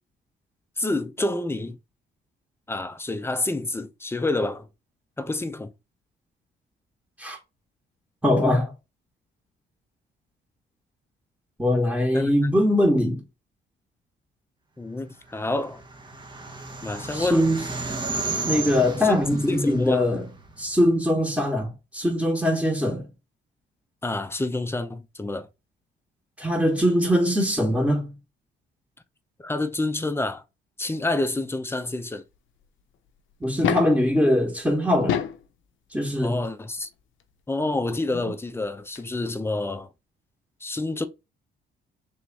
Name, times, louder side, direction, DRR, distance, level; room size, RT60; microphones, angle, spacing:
voice 1, 0.8-1.8 2.7-4.7 5.2-5.7 12.1-12.5 14.8-15.8 16.8-17.5 19.0-20.1 24.0-25.5 29.4-30.4 30.8-32.2 36.2-36.9 37.5-39.9 40.6-41.1, left 2 dB, 10° left, 0.6 m, -28 dB
voice 2, 8.2-8.7 11.6-13.2 17.1-17.6 18.4-20.2 20.6-23.1 26.4-28.1 33.4-35.2 35.9-36.4, left 1 dB, 5° right, 1.5 m, -22 dB
sound 1, 15.4-20.9, right 3 dB, 25° right, 1.1 m, -33 dB
sound 2, 33.4-34.0 34.9-35.5 36.8-36.9 38.7-38.8 39.0-39.1, left 9 dB, 75° left, 0.6 m, -26 dB
3.5 x 3.1 x 4.0 m
cardioid pair, 90°, 20 cm